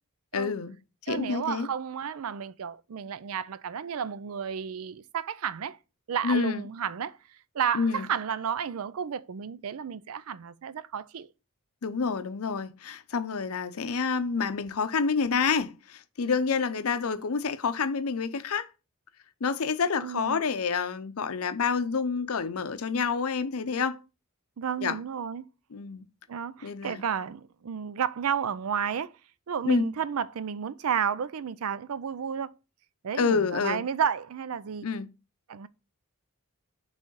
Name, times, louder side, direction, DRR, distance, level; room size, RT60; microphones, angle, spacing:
voice 1, 0.3-0.7 1.1-1.7 6.2-6.6 7.7-8.1 11.8-18.7 19.4-24.0 24.8-25.0 25.7-26.1 26.6-27.0 29.6-29.9 33.1-33.8 34.8-35.1, left 5 dB, 70° left, 0.6 m, -28 dB
voice 2, 1.1-5.8 6.1-7.2 7.5-11.3 20.0-20.4 24.6-25.4 26.3-29.2 29.5-32.6 33.0-34.9 35.5-35.7, right 7 dB, 70° right, 0.4 m, -32 dB
6.3 x 3.3 x 5.4 m
head